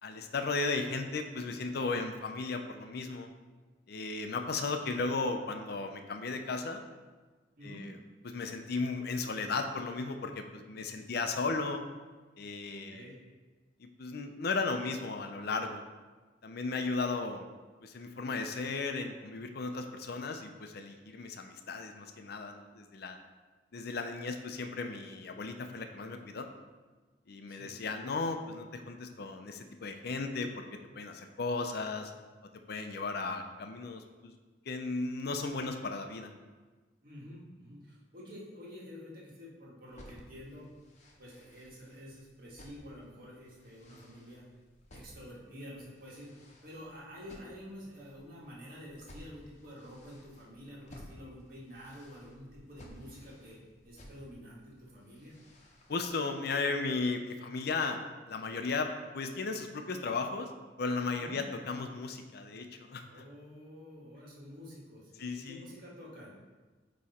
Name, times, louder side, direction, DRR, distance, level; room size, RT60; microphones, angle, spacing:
voice 1, 0.0-3.3 3.9-6.8 7.6-7.9 8.2-11.8 12.4-13.0 13.8-15.8 16.4-17.4 17.8-23.2 23.7-26.5 27.3-32.1 32.7-34.3 34.7-36.3 55.9-58.0 58.3-60.5 60.8-63.1 65.2-65.7, left 3 dB, 60° left, 6 dB, 0.5 m, -35 dB
voice 2, 7.6-7.9 12.6-13.2 27.5-27.8 33.1-33.4 37.0-40.7 41.2-44.4 44.9-55.4 61.2-61.4 63.1-66.4, equal, 55° right, -5 dB, 1.8 m, -49 dB
sound 1, 39.9-56.1, equal, 40° left, 0.9 m, -57 dB
8.5 x 3.1 x 4.2 m, 1.3 s
head